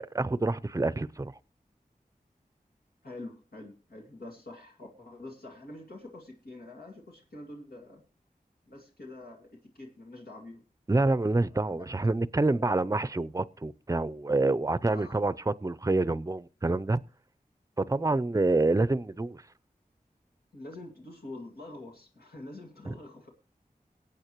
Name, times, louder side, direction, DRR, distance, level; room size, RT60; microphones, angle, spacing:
voice 1, 0.0-1.3 10.9-17.0 17.8-19.4 22.9-23.0, right 2 dB, 20° right, 0.5 m, -27 dB
voice 2, 3.0-8.0 8.7-10.6 11.5-11.8 14.9-15.2 20.5-23.3, left 2 dB, 90° left, 2.2 m, -46 dB
22.0 x 8.6 x 3.0 m
wide cardioid pair, 45°, 15 cm